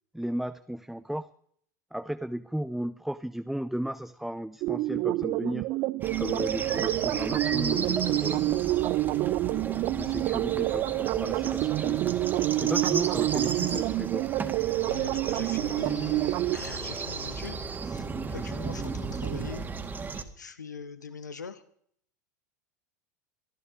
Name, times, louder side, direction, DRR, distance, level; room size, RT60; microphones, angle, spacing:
voice 1, 0.1-1.3 1.9-5.7 6.2-8.7 9.4-12.2 12.6-14.3 18.4-18.6, right 1 dB, ahead, 12 dB, 0.7 m, -35 dB
sound 1, 4.6-16.6, right 18 dB, 45° right, 0.5 m, -28 dB
sound 2, 6.0-20.2, right 4 dB, 20° right, 2.1 m, -35 dB
voice 2, 14.9-19.7 20.4-21.6, left 6 dB, 85° left, 11 dB, 1.5 m, -42 dB
24.0 x 13.5 x 3.8 m, 0.63 s
figure-of-eight pair, 80°, 9 cm